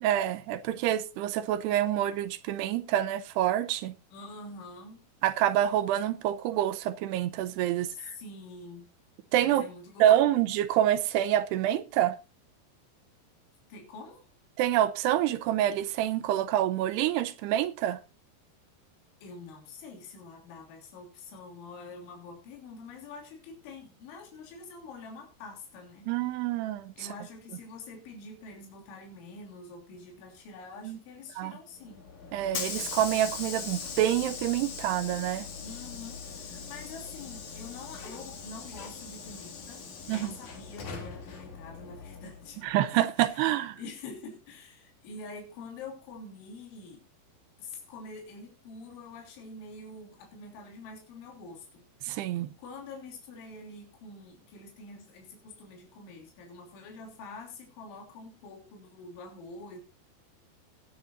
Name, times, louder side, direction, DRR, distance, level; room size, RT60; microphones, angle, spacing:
voice 1, 0.0-3.9 5.2-7.9 9.3-9.6 10.0-12.2 14.6-18.0 26.1-26.9 30.8-31.0 31.4-31.5 32.3-35.5 40.1-40.3 42.6-43.8 52.1-52.5, right 12 dB, 80° right, 2.6 m, -27 dB
voice 2, 4.1-5.0 7.8-8.9 9.4-10.3 13.7-14.3 19.2-26.1 27.0-32.1 35.6-42.6 42.9-47.0 47.6-51.8 52.6-59.8, left 3 dB, 85° left, 5.4 m, -46 dB
Hiss / Sliding door, 31.8-42.7, left 5 dB, 45° left, 3.1 m, -40 dB
19.0 x 10.0 x 2.6 m
omnidirectional pair, 5.3 m